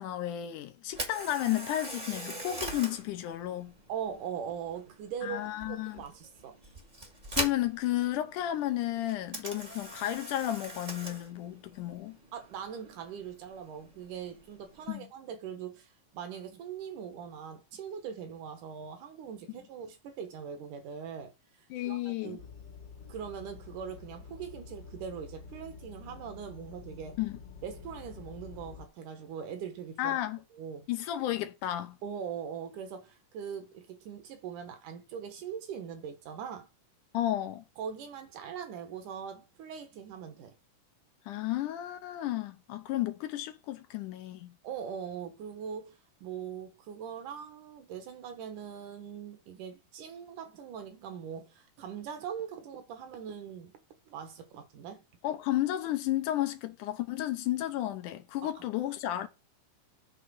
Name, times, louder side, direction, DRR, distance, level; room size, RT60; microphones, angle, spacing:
voice 1, 0.0-3.7 5.2-6.0 7.3-12.2 14.9-15.1 21.7-22.4 27.2-27.4 30.0-30.4 30.9-32.0 37.1-37.6 41.3-44.5 55.2-59.3, left 14 dB, 80° left, 2.3 m, -32 dB
Camera, 0.9-14.9, right 1 dB, 25° right, 0.9 m, -42 dB
voice 2, 3.9-6.6 12.3-21.3 21.8-22.5 23.1-27.2 27.6-30.2 30.5-30.9 32.0-36.7 37.8-40.6 44.6-53.7 54.1-55.0 58.4-58.6, right 7 dB, 75° right, 2.6 m, -41 dB
sound 1, 22.4-28.9, left 5 dB, 60° left, 1.7 m, -48 dB
7.6 x 3.7 x 6.2 m
omnidirectional pair, 3.7 m